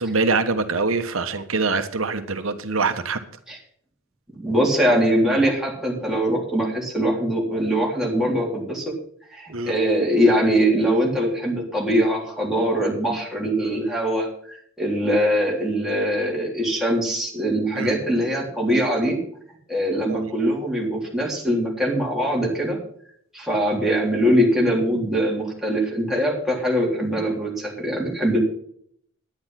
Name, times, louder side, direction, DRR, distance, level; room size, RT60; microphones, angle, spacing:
voice 1, 0.0-3.2 9.5-9.7 17.7-17.9 20.1-20.3, right 3 dB, 75° right, 8 dB, 1.3 m, -24 dB
voice 2, 4.3-8.9 9.3-19.2 19.7-22.8 23.3-28.4, equal, ahead, -3 dB, 3.6 m, -22 dB
10.5 x 10.5 x 5.9 m, 0.64 s
head